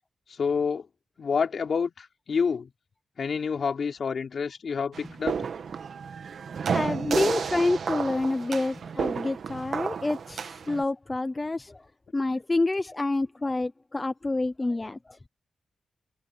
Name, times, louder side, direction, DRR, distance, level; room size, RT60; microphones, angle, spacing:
voice 1, 0.4-0.9 1.2-2.7 3.2-5.4, left 5 dB, 55° left, 4.1 m, -28 dB
sound 1, 4.9-10.8, right 6 dB, 65° right, 1.5 m, -32 dB
voice 2, 6.7-11.8 12.1-15.2, left 2 dB, 20° left, 0.8 m, -28 dB
wide cardioid pair, 125°, 0 cm